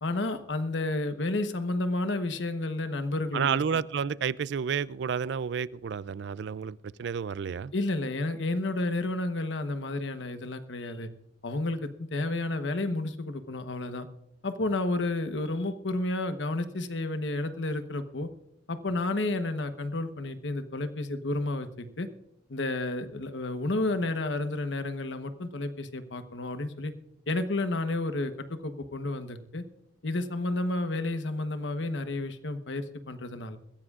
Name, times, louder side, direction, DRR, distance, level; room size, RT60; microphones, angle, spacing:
voice 1, 0.0-3.8 7.7-11.1 11.4-14.1 14.4-18.3 18.7-22.1 22.5-26.9 27.3-29.6 30.0-33.6, left 2 dB, 75° left, 1.1 m, -31 dB
voice 2, 3.3-7.7, right 7 dB, 65° right, 0.4 m, -30 dB
22.0 x 15.0 x 2.4 m
head